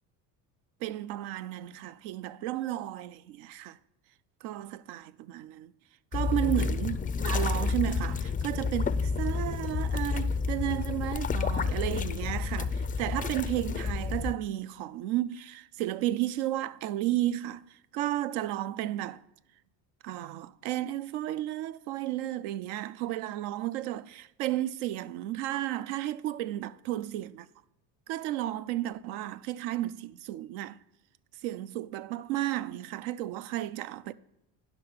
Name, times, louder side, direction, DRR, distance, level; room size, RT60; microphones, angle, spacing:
voice 1, 0.8-3.8 4.4-5.7 6.1-19.2 20.0-27.5 28.1-30.8 31.4-34.1, right 14 dB, 75° right, 0.6 m, -33 dB
sound 1, 6.1-14.4, left 5 dB, 20° left, 0.3 m, -30 dB
10.5 x 5.9 x 5.5 m
hypercardioid pair, 65°, 47 cm